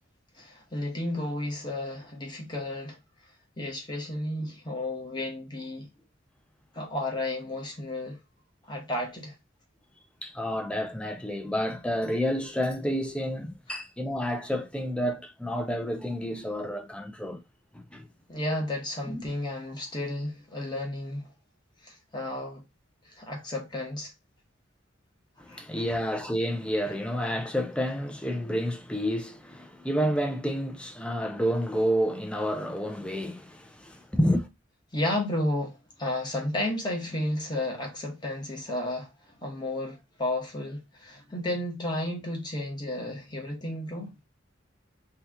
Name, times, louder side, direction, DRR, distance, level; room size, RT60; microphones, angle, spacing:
voice 1, 0.4-3.0 3.6-5.9 6.7-8.2 8.7-9.4 18.3-21.3 21.8-22.6 23.0-24.1 25.5-25.6 34.9-39.1 39.4-44.1, left 1 dB, 25° left, 1.0 m, -32 dB
voice 2, 10.2-17.4 17.7-18.1 19.1-19.2 25.4-34.5, equal, 5° left, 0.5 m, -29 dB
2.8 x 2.4 x 3.4 m
head